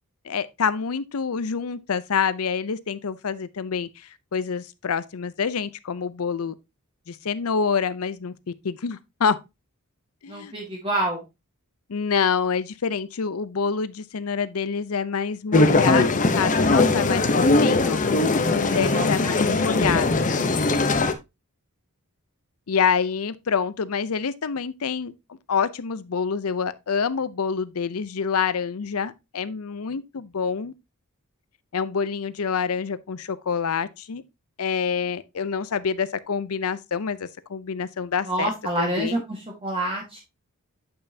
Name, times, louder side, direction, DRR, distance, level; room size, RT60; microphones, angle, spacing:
voice 1, 0.2-6.5 7.1-9.4 10.2-10.5 11.9-18.0 18.5-20.3 22.7-25.1 25.5-30.7 31.7-34.2 34.6-38.5 38.8-39.2, left 6 dB, 70° left, 0.6 m, -27 dB
voice 2, 10.3-11.2 18.6-19.3 38.2-40.2, right 1 dB, 25° right, 1.6 m, -28 dB
sound 1, 15.5-21.1, left 3 dB, 35° left, 0.8 m, -20 dB
8.7 x 5.5 x 2.7 m
head